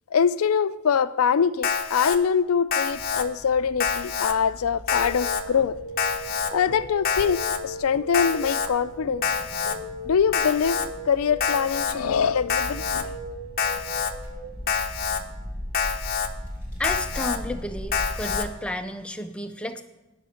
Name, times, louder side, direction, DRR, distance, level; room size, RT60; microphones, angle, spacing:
voice 1, 0.1-5.8 6.5-9.3 10.0-10.8 11.1-13.2, left 7 dB, 75° left, 0.4 m, -23 dB
Alarm, 1.6-2.2 2.7-3.2 3.8-4.3 4.9-5.4 6.0-6.5 7.0-7.6 8.1-8.7 9.2-9.8 10.3-10.9 11.4-11.9 12.5-13.0 13.6-14.1 14.7-15.2 15.7-16.3 16.8-17.4 17.9-18.4, left 6 dB, 45° left, 0.7 m, -26 dB
sound 1, 2.9-18.4, equal, 15° right, 2.7 m, -40 dB
sound 2, 4.9-14.4, equal, 65° right, 2.3 m, -39 dB
voice 2, 16.8-19.8, left 1 dB, 5° left, 0.4 m, -32 dB
10.0 x 6.5 x 6.5 m
head